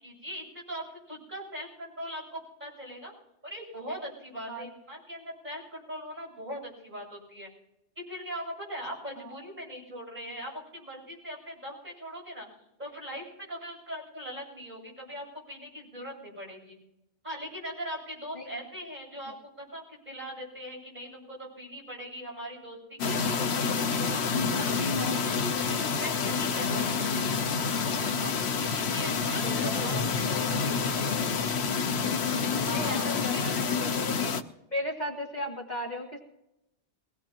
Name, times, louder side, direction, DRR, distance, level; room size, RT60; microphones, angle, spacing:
voice 1, 0.0-3.1 3.4-7.5 8.0-12.5 12.8-16.8 17.2-27.1 28.2-28.3 28.6-31.2 32.6-33.6, equal, 40° right, -4 dB, 7.8 m, -41 dB
sound 1, 23.0-34.4, left 5 dB, 70° left, 1.1 m, -28 dB
voice 2, 29.1-30.1 30.3-31.1 32.7-34.2 34.7-36.2, left 1 dB, 40° left, -2 dB, 1.9 m, -37 dB
22.5 x 17.5 x 2.9 m, 0.88 s
omnidirectional pair, 1.2 m